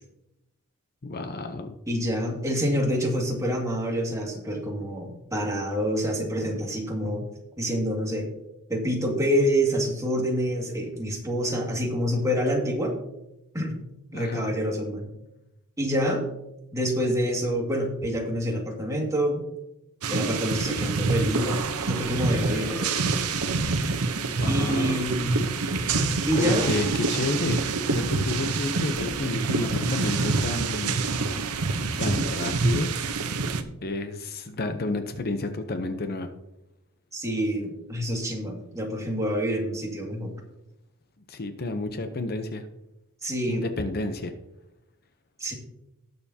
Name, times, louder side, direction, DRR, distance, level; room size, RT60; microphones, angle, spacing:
voice 1, 1.0-1.8 14.1-14.5 24.4-25.0 26.1-27.6 27.9-31.0 31.3-31.7 32.0-32.9 33.8-36.3 41.3-42.7 43.5-44.3, left 2 dB, 45° left, 7 dB, 0.8 m, -30 dB
voice 2, 1.9-7.3 7.6-8.3 8.7-13.0 13.5-13.8 14.1-15.1 15.8-16.2 16.7-19.5 20.1-23.0 24.5-25.4 26.2-26.6 37.1-40.3 43.2-43.7 45.4-45.5, equal, 15° right, -1 dB, 2.1 m, -27 dB
sound 1, 20.0-33.6, right 4 dB, 85° right, 0.9 m, -26 dB
18.5 x 6.9 x 2.8 m, 0.89 s
head